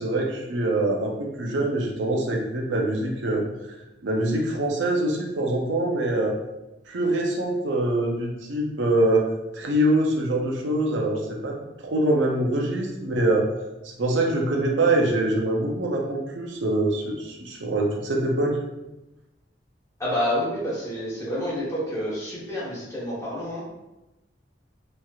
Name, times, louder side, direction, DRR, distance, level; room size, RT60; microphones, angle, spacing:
voice 1, 0.0-3.4 4.0-6.4 6.9-9.3 9.5-11.6 11.8-13.5 14.0-18.6, right 1 dB, 90° right, 0 dB, 0.6 m, -24 dB
voice 2, 20.0-23.6, equal, 15° left, -7 dB, 1.1 m, -28 dB
3.1 x 2.8 x 2.3 m, 0.97 s
head